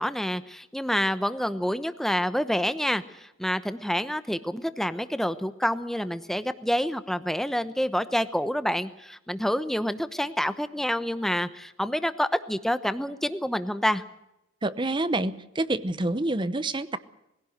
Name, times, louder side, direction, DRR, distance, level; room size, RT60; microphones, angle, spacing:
voice 1, 0.0-14.0, equal, ahead, 12 dB, 0.9 m, -28 dB
voice 2, 14.6-17.0, right 2 dB, 25° right, 14 dB, 0.8 m, -27 dB
21.5 x 16.5 x 8.0 m, 0.89 s
head